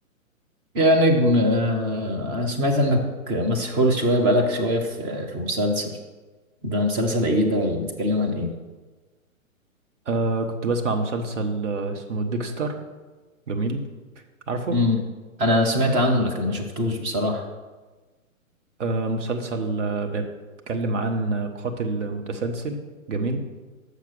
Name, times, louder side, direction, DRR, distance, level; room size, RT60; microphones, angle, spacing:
voice 1, 0.7-5.9 6.6-8.5 14.7-15.0 15.4-17.5, left 1 dB, 15° right, 2 dB, 0.6 m, -22 dB
voice 2, 10.1-12.7 13.5-13.8 14.5-14.7 18.8-20.3 20.7-22.8 23.1-23.4, right 3 dB, 60° right, 5 dB, 1.2 m, -26 dB
6.6 x 5.9 x 6.2 m, 1.3 s
figure-of-eight pair, 125°, 42 cm